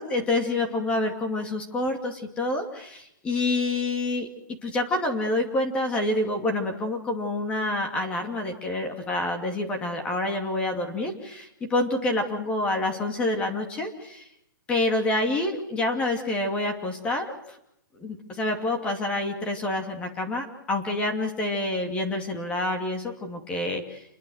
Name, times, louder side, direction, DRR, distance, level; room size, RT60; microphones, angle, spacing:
voice 1, 0.0-4.3 4.6-14.2 14.7-17.3 18.0-24.0, left 2 dB, 10° left, 4 dB, 2.6 m, -27 dB
28.5 x 21.5 x 6.5 m, 0.76 s
hypercardioid pair, 170°, 11 cm